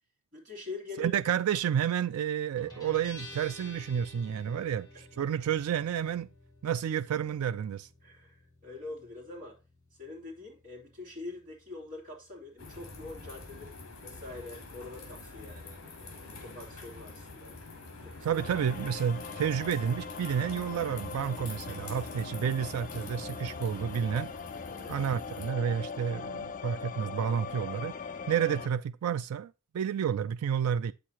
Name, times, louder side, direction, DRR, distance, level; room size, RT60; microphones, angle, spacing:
voice 1, 0.3-1.2 8.0-9.6 10.0-17.6 18.0-18.4 21.3-21.5 24.6-25.0, left 3 dB, 40° right, 3.2 m, -45 dB
voice 2, 1.0-4.9 5.2-6.3 6.6-7.9 18.2-24.3 24.9-27.9 28.3-30.9, right 8 dB, 80° right, 0.3 m, -30 dB
Guitar, 2.6-19.8, left 2 dB, 20° left, 4.3 m, -55 dB
sound 1, 12.6-25.5, left 3 dB, 65° left, 2.4 m, -46 dB
sound 2, 18.4-28.7, left 5 dB, 35° left, 0.4 m, -41 dB
8.4 x 6.4 x 2.9 m
head